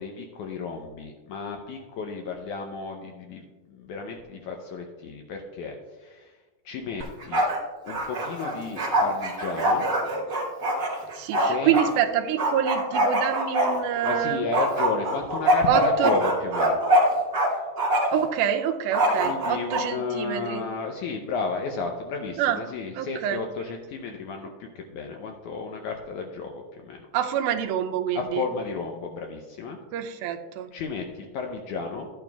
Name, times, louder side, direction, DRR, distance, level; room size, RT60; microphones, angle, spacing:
voice 1, 0.0-6.3 6.7-7.5 7.9-9.9 11.0-11.8 14.0-16.8 19.2-24.5 24.8-27.1 28.2-29.8 30.7-32.1, left 4 dB, 80° left, 2 dB, 1.8 m, -33 dB
Bark, 7.0-7.6 7.9-11.9 12.4-14.2 14.5-17.5 17.8-18.3 18.9-19.8, right 1 dB, 50° right, 1.1 m, -23 dB
voice 2, 11.2-14.4 15.7-16.2 18.1-20.6 22.4-22.6 23.0-23.4 27.1-28.4 29.9-30.7, right 9 dB, 85° right, 5 dB, 2.4 m, -26 dB
14.0 x 8.9 x 2.3 m, 1.3 s
omnidirectional pair, 4.2 m